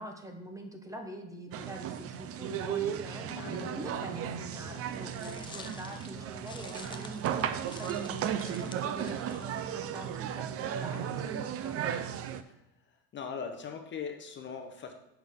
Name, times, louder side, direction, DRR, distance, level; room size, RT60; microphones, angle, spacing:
voice 1, 0.0-12.3, right 1 dB, 10° right, 4 dB, 0.9 m, -44 dB
sound 1, 1.5-12.4, right 9 dB, 35° right, 0.5 m, -35 dB
sound 2, 3.2-8.5, left 12 dB, 90° left, 0.9 m, -52 dB
sound 3, 4.8-10.4, left 5 dB, 15° left, 0.3 m, -51 dB
voice 2, 12.9-14.9, left 6 dB, 30° left, 5 dB, 0.8 m, -40 dB
9.5 x 5.8 x 3.7 m, 0.92 s
supercardioid pair, 125°, 39 cm